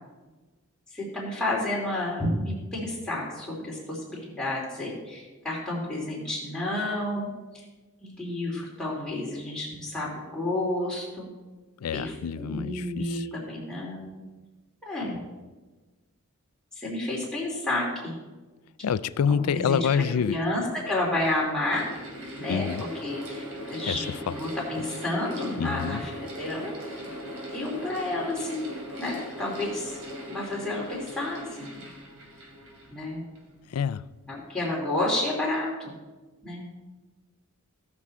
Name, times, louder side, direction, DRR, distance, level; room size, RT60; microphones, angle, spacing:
voice 1, 0.9-7.3 7.5-7.6 8.0-11.3 11.9-14.2 14.8-15.2 16.8-18.1 19.3-21.8 22.4-26.7 27.5-28.7 29.0-30.0 30.3-31.8 32.9-33.2 34.3-35.9 36.4-36.6, left 1 dB, 5° left, 3.0 m, -30 dB
voice 2, 11.8-13.3 18.8-20.4 22.5-22.8 23.9-24.4 25.6-26.0 33.7-34.1, left 7 dB, 85° left, 0.4 m, -27 dB
Mechanical fan, 20.9-33.5, equal, 75° right, 2.8 m, -40 dB
17.0 x 6.2 x 4.3 m
head